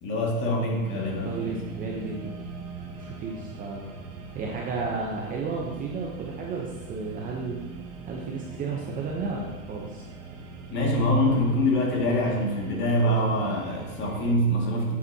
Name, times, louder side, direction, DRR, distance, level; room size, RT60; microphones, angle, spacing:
voice 1, 0.0-1.6 10.7-15.0, equal, 25° left, -1 dB, 2.2 m, -25 dB
sound 1, 0.8-14.3, right 4 dB, 50° right, 1.9 m, -42 dB
voice 2, 1.2-2.4 2.9-3.8 4.3-7.6 8.1-10.1, right 4 dB, 20° right, -1 dB, 0.9 m, -33 dB
12.0 x 8.5 x 2.9 m, 1.3 s
hypercardioid pair, 140°, 44 cm